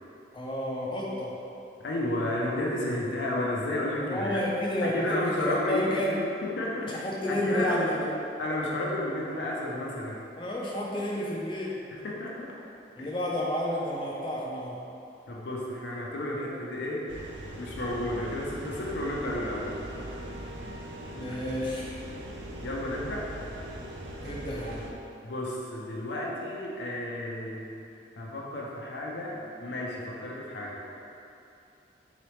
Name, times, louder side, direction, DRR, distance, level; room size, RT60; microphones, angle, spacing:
voice 1, 0.3-1.4 4.0-6.2 6.9-8.1 10.4-11.8 13.0-14.8 21.1-22.0 24.2-24.9, left 1 dB, 25° left, -4 dB, 0.4 m, -31 dB
voice 2, 1.8-4.4 4.8-5.9 6.4-7.9 8.4-10.2 11.9-12.5 13.0-13.1 15.3-19.7 21.3-21.4 22.6-23.2 25.2-30.9, left 1 dB, 80° left, -3 dB, 0.5 m, -32 dB
sound 1, 17.1-24.9, right 1 dB, 80° right, 0.4 m, -40 dB
3.9 x 3.0 x 3.1 m, 2.7 s
head